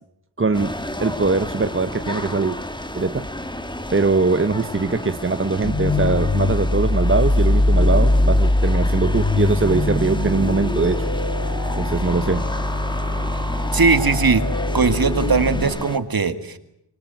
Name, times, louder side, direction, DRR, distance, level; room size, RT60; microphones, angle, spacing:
voice 1, 0.4-0.7 1.0-2.6 2.9-3.3 3.9-11.1 11.8-12.5, right 3 dB, 30° right, 9 dB, 1.1 m, -21 dB
sound 1, 0.5-16.0, left 1 dB, 10° left, 1.9 m, -32 dB
sound 2, 5.6-15.6, left 1 dB, 50° left, 6.8 m, -21 dB
voice 2, 13.7-14.4 14.7-16.6, right 4 dB, 50° right, 10 dB, 2.1 m, -19 dB
26.0 x 24.0 x 9.1 m, 0.79 s
wide cardioid pair, 90°, 44 cm